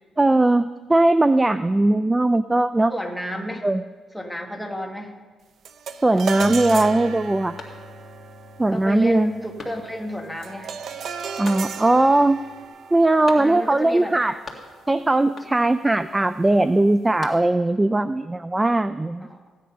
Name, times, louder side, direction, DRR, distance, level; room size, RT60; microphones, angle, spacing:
voice 1, 0.2-2.9 3.6-3.8 6.0-7.5 8.6-9.3 11.4-12.4 12.9-14.4 14.9-19.3, right 2 dB, 15° right, 13 dB, 0.4 m, -19 dB
voice 2, 2.9-3.7 4.1-5.2 8.7-10.7 13.4-14.2 19.2-19.5, equal, ahead, 4 dB, 1.7 m, -31 dB
sound 1, 5.6-15.1, right 6 dB, 60° right, 0.7 m, -36 dB
Bass guitar, 6.4-12.7, left 6 dB, 45° left, 1.0 m, -44 dB
sound 2, 7.6-8.3 8.7-8.8 9.6-10.2 11.4-12.1 13.2-13.9 14.1-15.0 15.3-15.8 16.8-17.8, left 3 dB, 30° left, 2.1 m, -41 dB
15.5 x 9.4 x 5.5 m, 1.4 s
cardioid pair, 90°, 0 cm